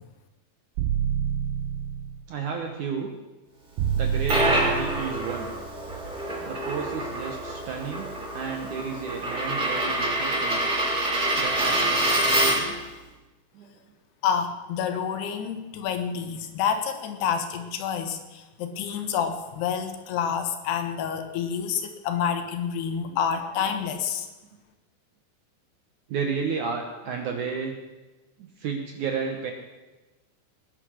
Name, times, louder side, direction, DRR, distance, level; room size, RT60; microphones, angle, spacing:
sound 1, 0.8-2.2 3.8-5.2, right 8 dB, 85° right, 3.1 m, -27 dB
voice 1, 2.3-3.1 4.0-5.5 6.4-10.6 11.4-12.8 13.5-13.8 18.9-19.1 23.1-23.2 26.1-27.7 28.4-29.5, right 6 dB, 65° right, 3 dB, 2.0 m, -32 dB
Coin (dropping), 3.9-12.8, right 1 dB, 30° right, 4.5 m, -26 dB
voice 2, 14.2-24.3, left 7 dB, 75° left, 7 dB, 3.2 m, -28 dB
19.5 x 9.9 x 6.4 m, 1.1 s
omnidirectional pair, 4.9 m